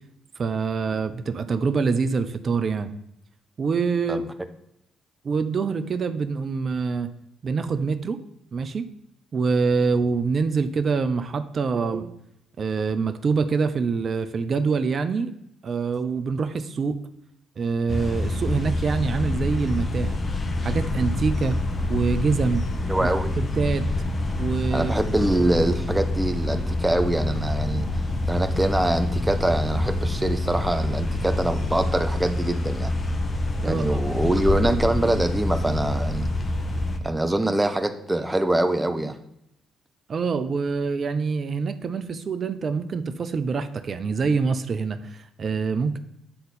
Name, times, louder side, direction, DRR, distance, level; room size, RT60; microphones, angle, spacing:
voice 1, 0.4-2.9 3.6-4.3 5.2-7.1 7.4-8.2 8.5-8.9 9.3-12.1 12.6-15.3 15.6-17.0 17.6-20.2 20.6-21.6 21.9-22.7 23.0-23.1 23.6-23.9 24.4-24.9 33.6-34.0 40.1-46.0, right 5 dB, 50° right, 10 dB, 0.6 m, -25 dB
sound 1, 17.9-37.0, left 2 dB, 40° left, 1.2 m, -26 dB
voice 2, 22.9-23.3 24.7-27.9 28.3-32.9 33.6-36.3 37.0-39.2, right 1 dB, 15° right, 7 dB, 1.1 m, -24 dB
8.6 x 3.9 x 5.5 m, 0.79 s
hypercardioid pair, 50°, 0 cm